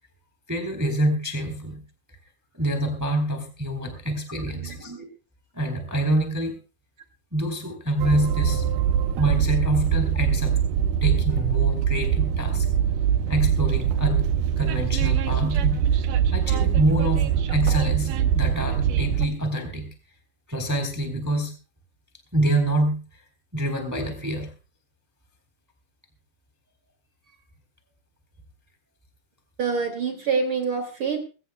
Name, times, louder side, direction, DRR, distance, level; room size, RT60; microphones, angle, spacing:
voice 1, 0.5-1.8 2.5-5.0 5.5-6.6 7.3-8.6 9.2-10.5 11.0-12.7 13.3-14.3 14.6-16.0 16.3-19.9 20.5-21.5 22.3-23.0 23.5-24.5, right 1 dB, 5° right, 4 dB, 2.9 m, -26 dB
voice 2, 4.4-4.8 29.6-31.2, right 5 dB, 40° right, 4 dB, 2.8 m, -26 dB
Train, 8.0-19.3, right 8 dB, 75° right, 2.4 m, -23 dB
22.0 x 17.5 x 2.2 m, 0.34 s
omnidirectional pair, 3.9 m